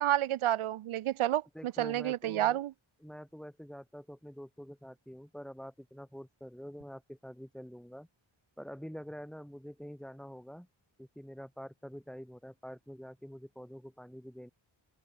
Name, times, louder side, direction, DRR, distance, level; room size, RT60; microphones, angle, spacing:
voice 1, 0.0-2.7, right 13 dB, 85° right, 0.6 m, -30 dB
voice 2, 1.5-2.6 3.0-8.1 8.6-10.7 11.0-14.5, equal, ahead, 1.8 m, -46 dB
open air
wide cardioid pair, 120°, 49 cm